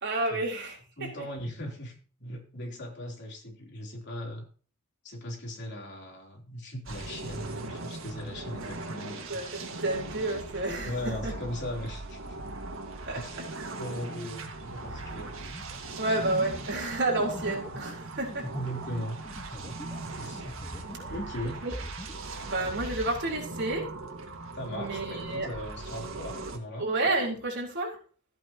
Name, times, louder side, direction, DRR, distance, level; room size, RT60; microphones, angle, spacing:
voice 1, 0.0-1.3 9.3-11.3 13.1-13.4 16.0-18.5 21.6-21.7 22.4-23.9 24.7-25.5 26.8-28.0, right 2 dB, 55° right, 4.0 m, -30 dB
voice 2, 1.0-4.4 5.0-9.3 10.8-12.2 13.1-13.5 13.8-15.3 18.5-19.2 20.1-20.4 21.1-21.6 24.6-26.9, left 1 dB, 55° left, 3.4 m, -38 dB
sound 1, 6.9-26.6, right 2 dB, 70° right, 1.9 m, -39 dB
sound 2, 15.4-21.2 21.4-23.0, left 1 dB, 20° left, 1.3 m, -43 dB
14.5 x 8.9 x 2.9 m
head